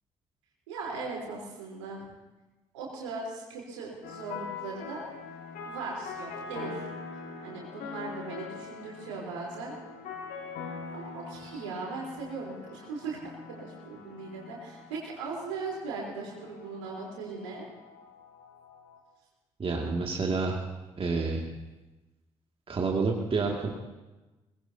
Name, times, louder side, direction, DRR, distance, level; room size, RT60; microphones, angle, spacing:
voice 1, 0.7-2.1 2.7-5.0 5.6-6.9 7.4-9.7 10.9-13.2 13.5-17.7, right 4 dB, 75° right, -3 dB, 3.7 m, -38 dB
sound 1, 4.0-19.0, left 5 dB, 60° left, 2.2 m, -43 dB
voice 2, 19.6-20.6 21.0-21.4 22.7-23.7, right 4 dB, 35° right, 0 dB, 2.2 m, -28 dB
22.5 x 19.5 x 2.8 m, 1.1 s
figure-of-eight pair, 40°, 16 cm